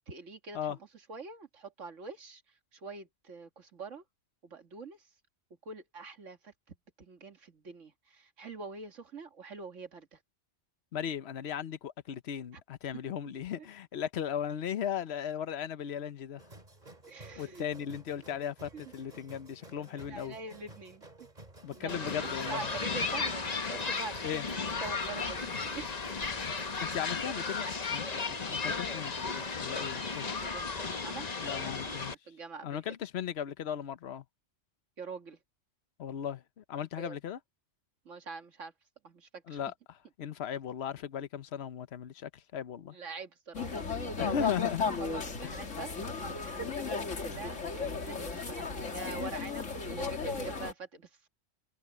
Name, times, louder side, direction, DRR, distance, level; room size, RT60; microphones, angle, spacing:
voice 1, 0.1-4.0 4.4-5.1 5.7-10.2 12.5-12.6 13.6-13.7 17.1-17.7 18.4-18.5 18.7-18.8 19.7-21.0 21.7-26.1 29.9-32.8 35.0-35.4 37.0-37.2 38.1-38.7 39.0-39.6 42.9-43.9 44.4-48.6 48.9-51.3, right 4 dB, 85° right, 2.1 m, -45 dB
voice 2, 10.9-16.4 17.4-20.3 21.6-22.6 24.2-24.5 26.8-30.2 31.4-32.1 32.6-34.2 36.0-37.4 39.5-39.7 40.2-43.0 44.2-44.8 45.4-45.5, left 9 dB, 65° left, 1.1 m, -37 dB
sound 1, 16.4-27.0, right 2 dB, 35° right, 3.1 m, -53 dB
sound 2, 21.9-32.2, left 4 dB, 35° left, 1.1 m, -35 dB
sound 3, 43.5-50.7, left 4 dB, 90° left, 2.5 m, -35 dB
omnidirectional pair, 1.2 m